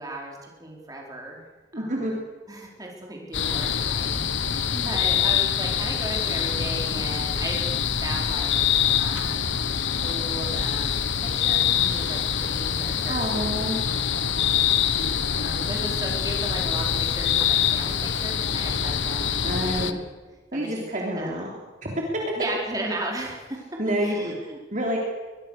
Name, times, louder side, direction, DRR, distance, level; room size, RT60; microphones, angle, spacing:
voice 1, 0.0-1.4 1.7-2.1 2.5-4.1 4.4-7.7 7.9-8.6 9.0-9.5 10.0-13.3 15.3-20.0 20.5-20.8 21.1-21.3 22.4-24.6, right 1 dB, 20° right, -1 dB, 4.7 m, -36 dB
voice 2, 1.7-2.1 13.1-13.8 19.4-19.9 20.5-21.5 21.8-21.9 23.8-24.3 24.7-25.0, right 1 dB, 40° right, -1 dB, 3.3 m, -28 dB
sound 1, 3.3-19.9, left 8 dB, 75° left, 1.3 m, -25 dB
23.0 x 22.0 x 6.7 m, 1.3 s
head